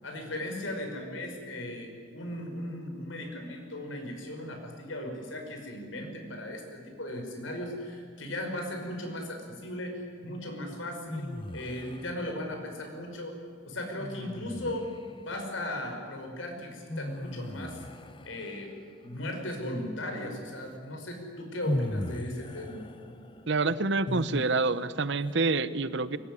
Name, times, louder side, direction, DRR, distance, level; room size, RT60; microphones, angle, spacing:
voice 1, 0.0-13.4 13.7-14.9 15.2-17.8 18.2-18.8 19.0-22.8, left 1 dB, 80° left, 3 dB, 5.6 m, -37 dB
sound 1, 11.1-12.2 14.0-15.1 16.9-18.8 20.7-20.8 21.6-24.9, left 1 dB, 25° left, 0.9 m, -37 dB
voice 2, 23.5-26.2, right 3 dB, 60° right, 15 dB, 1.0 m, -27 dB
23.5 x 21.0 x 10.0 m, 2.2 s
head